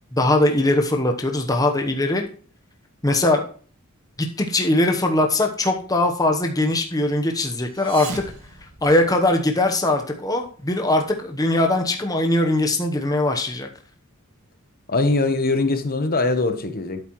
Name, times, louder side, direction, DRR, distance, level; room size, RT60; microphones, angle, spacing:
voice 1, 0.1-2.2 3.0-3.4 4.2-8.2 8.8-13.7, left 1 dB, 15° left, 3 dB, 1.0 m, -21 dB
sound 1, 7.6-9.5, right 3 dB, 75° right, 2.1 m, -37 dB
voice 2, 14.9-17.0, left 2 dB, 40° left, 8 dB, 1.1 m, -21 dB
11.0 x 8.5 x 3.1 m, 0.42 s
head